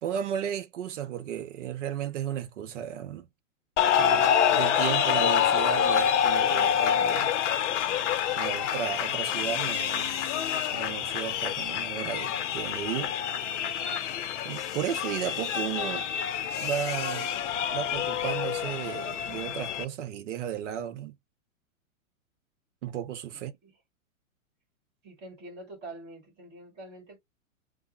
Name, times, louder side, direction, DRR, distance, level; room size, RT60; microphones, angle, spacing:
voice 1, 0.0-3.3 3.9-7.3 8.4-10.1 10.5-13.1 14.4-16.1 16.6-17.3 17.7-21.2 22.8-23.5, right 9 dB, 60° right, 0.8 m, -34 dB
sound 1, 3.8-19.8, left 9 dB, 60° left, 0.6 m, -27 dB
voice 2, 23.3-23.7 25.0-27.2, right 2 dB, 25° right, 1.9 m, -45 dB
3.4 x 2.1 x 2.9 m
hypercardioid pair, 130°, 41 cm